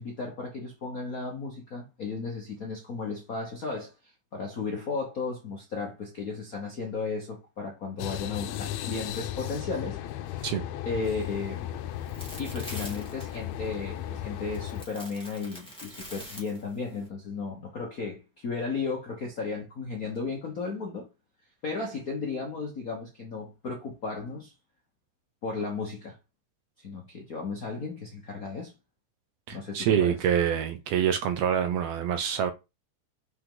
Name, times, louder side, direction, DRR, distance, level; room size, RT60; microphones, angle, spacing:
voice 1, 0.0-10.0 10.3-10.5 10.8-11.7 12.4-21.1 21.6-24.5 25.4-26.2 26.8-28.7 29.5-30.2, left 4 dB, 60° left, 0.9 m, -35 dB
sound 1, 8.0-14.9, left 12 dB, 80° left, 1.9 m, -35 dB
sound 2, 11.2-17.1, equal, ahead, 2.3 m, -46 dB
voice 2, 29.5-32.5, right 9 dB, 75° right, 1.6 m, -26 dB
6.1 x 5.2 x 3.9 m
omnidirectional pair, 3.4 m